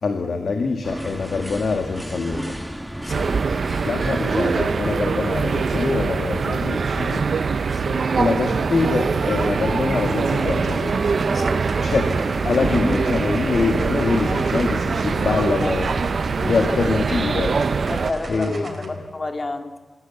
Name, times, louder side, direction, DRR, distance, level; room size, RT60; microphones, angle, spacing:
voice 1, 0.0-2.6 3.8-7.3 8.2-11.0 11.8-15.9 16.4-17.5 17.8-17.9 18.3-18.9, left 4 dB, 70° left, 4 dB, 2.0 m, -24 dB
sound 1, 0.8-18.4, equal, 5° right, 1.2 m, -33 dB
voice 2, 3.0-3.4 7.7-8.1 11.3-11.7 12.4-12.6 15.3-15.7 16.4-16.7 17.9-19.8, left 2 dB, 35° left, 5 dB, 2.4 m, -31 dB
sound 2, 3.1-18.1, right 5 dB, 65° right, 0.7 m, -23 dB
sound 3, 10.0-18.8, right 3 dB, 45° right, 4.3 m, -41 dB
28.5 x 16.5 x 8.5 m, 1.4 s
wide cardioid pair, 115°, 0 cm